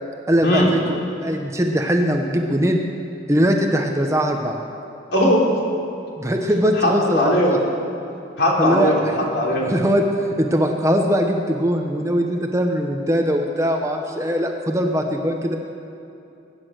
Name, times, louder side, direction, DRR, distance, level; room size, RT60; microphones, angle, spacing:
voice 1, 0.3-2.8 3.3-4.6 6.2-7.6 8.6-8.9 9.6-10.1 10.4-15.6, equal, 15° right, 3 dB, 0.9 m, -21 dB
voice 2, 5.1-5.4 6.8-7.6 8.4-9.0 9.3-9.7, equal, 60° left, -3 dB, 3.4 m, -18 dB
22.0 x 9.9 x 6.5 m, 2.7 s
head